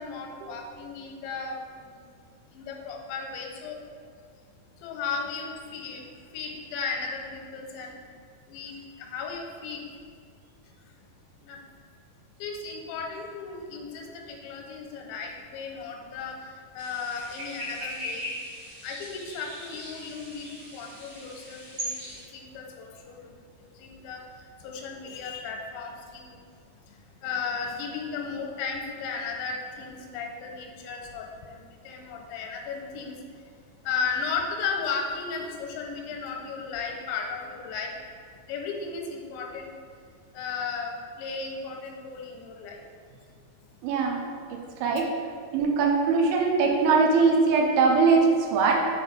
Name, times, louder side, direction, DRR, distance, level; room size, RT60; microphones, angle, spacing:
voice 1, 0.0-2.0 2.5-3.8 4.8-6.0 6.3-8.0 8.5-9.8 11.4-11.6 12.4-18.3 18.8-26.4 26.9-27.0 27.2-33.1 33.8-37.9 38.5-39.7 40.3-42.8, left 5 dB, 85° left, 1 dB, 2.9 m, -35 dB
sound 1, 16.8-22.2, equal, 55° right, 1.9 m, -39 dB
voice 2, 43.8-44.3 44.8-45.1 45.5-48.9, right 4 dB, 80° right, 0 dB, 3.0 m, -21 dB
6.7 x 4.1 x 5.0 m, 2.2 s
omnidirectional pair, 5.4 m